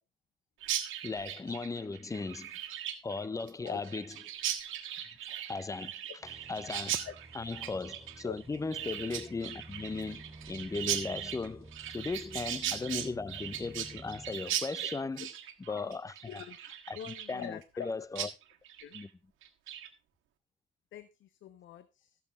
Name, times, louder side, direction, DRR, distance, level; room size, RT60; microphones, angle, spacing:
Chirp tweet, 0.6-17.9 18.2-18.3 18.6-19.0 19.4-19.9, right 11 dB, 90° right, 1.5 m, -38 dB
voice 1, 1.0-2.5 3.0-4.2 5.3-7.1 7.3-15.3 15.6-16.4 16.9-18.3 18.9-19.1, left 3 dB, 15° left, 0.5 m, -37 dB
sound 1, 6.2-14.3, right 2 dB, 10° right, 4.3 m, -52 dB
voice 2, 16.9-17.9 18.8-19.0 20.9-22.2, left 10 dB, 75° left, 0.8 m, -44 dB
16.0 x 7.1 x 3.5 m
cardioid pair, 90°, 20 cm